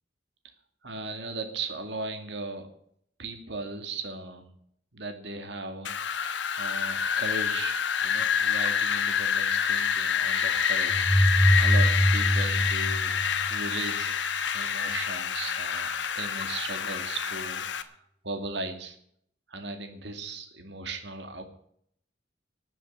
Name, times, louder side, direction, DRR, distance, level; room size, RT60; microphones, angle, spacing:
voice 1, 0.8-2.7 3.2-4.5 4.9-14.2 14.5-18.0 18.2-19.0 19.5-21.4, right 3 dB, 65° right, 6 dB, 2.3 m, -38 dB
Wind, 5.8-17.8, left 7 dB, 75° left, 1.2 m, -27 dB
sound 1, 10.9-13.8, equal, 25° right, 2.5 m, -23 dB
13.0 x 7.7 x 9.7 m, 0.67 s
head